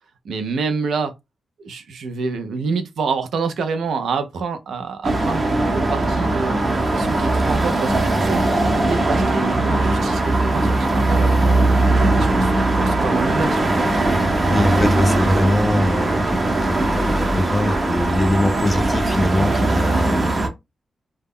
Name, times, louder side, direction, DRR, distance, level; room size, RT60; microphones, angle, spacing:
voice 1, 0.2-1.1 1.6-12.5 12.8-13.7, right 4 dB, 90° right, 0.5 m, -27 dB
sound 1, 5.0-20.5, right 2 dB, 35° right, 0.7 m, -19 dB
voice 2, 14.5-20.3, left 1 dB, 20° left, 0.5 m, -23 dB
2.2 x 2.0 x 3.5 m
wide cardioid pair, 115°, 0 cm